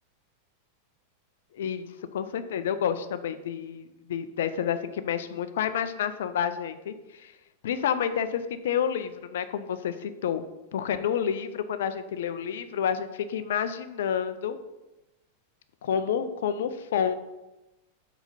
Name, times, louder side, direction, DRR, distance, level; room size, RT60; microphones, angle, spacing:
voice 1, 1.5-1.9 2.1-6.9 7.2-7.3 7.6-10.4 10.7-14.6 15.8-17.1, left 8 dB, 60° left, 11 dB, 0.4 m, -29 dB
4.7 x 3.9 x 5.2 m, 1.0 s
figure-of-eight pair, 90°, 0 cm